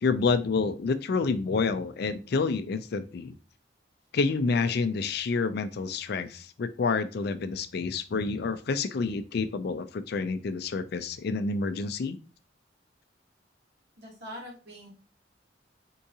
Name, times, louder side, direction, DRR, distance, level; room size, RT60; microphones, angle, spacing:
voice 1, 0.0-3.3 4.1-12.2, left 4 dB, 60° left, 11 dB, 0.4 m, -28 dB
voice 2, 14.0-14.9, equal, 65° right, -4 dB, 2.3 m, -43 dB
4.6 x 3.7 x 2.7 m, 0.35 s
head